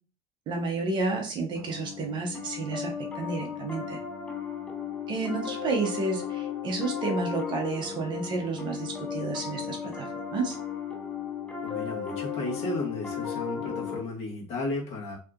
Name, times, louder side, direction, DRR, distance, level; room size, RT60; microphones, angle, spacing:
voice 1, 0.5-4.0 5.1-10.6, right 3 dB, 30° right, 2 dB, 0.7 m, -31 dB
Piano, 1.5-14.0, left 7 dB, 5° left, 0.4 m, -35 dB
voice 2, 11.6-15.2, left 2 dB, 45° left, -2 dB, 1.1 m, -34 dB
2.7 x 2.4 x 3.5 m, 0.37 s
cardioid pair, 165°, 15 cm